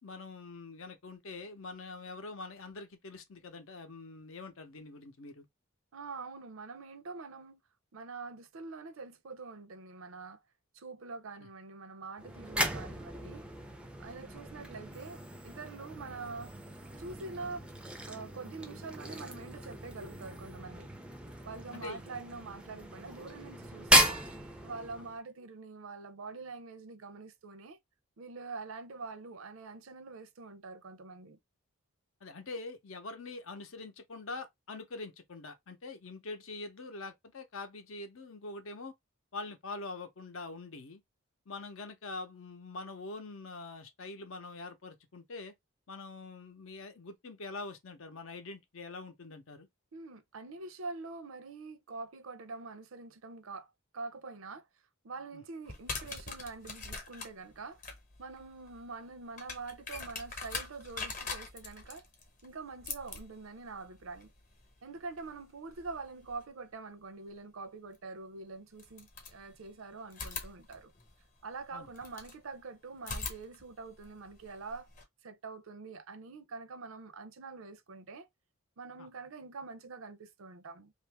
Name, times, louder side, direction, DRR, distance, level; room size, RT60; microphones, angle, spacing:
voice 1, 0.0-5.5 11.4-11.5 16.0-16.1 21.7-22.0 32.2-38.9 39.3-41.0 41.5-45.5 45.9-49.7 55.3-55.4 71.7-71.9 79.0-79.1, left 3 dB, 70° left, 0.7 m, -44 dB
voice 2, 5.9-7.6 7.9-10.4 10.7-13.5 14.0-16.5 17.0-17.7 18.1-20.9 21.4-24.2 24.6-27.8 28.2-31.4 49.9-54.7 55.0-57.8 58.2-62.1 62.4-64.3 64.8-70.9 71.4-74.9 75.2-78.3 78.8-80.9, right 4 dB, 75° right, 0.6 m, -45 dB
sound 1, 12.2-25.2, right 1 dB, 5° right, 0.4 m, -35 dB
sound 2, 55.7-66.5 67.9-68.0 68.7-69.7 70.1-72.4 73.0-75.0, left 4 dB, 35° left, 0.9 m, -44 dB
2.8 x 2.5 x 3.3 m
head